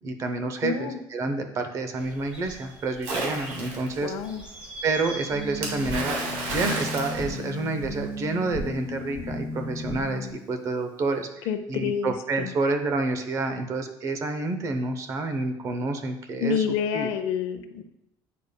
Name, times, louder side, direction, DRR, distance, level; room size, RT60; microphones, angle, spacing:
voice 1, 0.0-4.1 4.8-11.3 11.7-16.6 16.9-17.1, right 3 dB, 35° right, 7 dB, 0.6 m, -29 dB
voice 2, 0.6-1.0 4.0-4.4 11.5-12.5 16.4-17.8, left 7 dB, 85° left, 9 dB, 0.6 m, -28 dB
sound 1, 2.0-7.2, equal, 10° right, 1.1 m, -43 dB
Splash splatter, 3.0-4.0 5.6-8.1, right 2 dB, 85° right, 1.9 m, -32 dB
sound 2, 5.3-10.3, left 2 dB, 35° left, 0.9 m, -34 dB
8.5 x 5.0 x 2.2 m, 0.83 s
cardioid pair, 165°, 9 cm